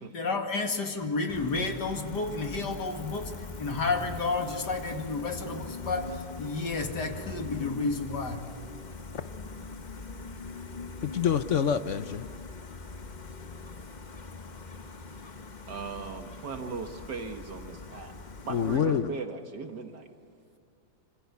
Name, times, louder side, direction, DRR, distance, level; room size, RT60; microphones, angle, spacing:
voice 1, 0.1-3.3 3.6-8.4, left 3 dB, 70° left, 4 dB, 2.8 m, -31 dB
Gull seagull, 1.3-18.8, left 4 dB, 30° left, 0.9 m, -42 dB
voice 2, 11.0-12.3 18.5-19.1, left 7 dB, 55° left, 11 dB, 0.9 m, -26 dB
voice 3, 15.7-20.1, right 4 dB, 70° right, 5 dB, 2.1 m, -39 dB
26.0 x 25.0 x 8.4 m, 2.5 s
omnidirectional pair, 1.9 m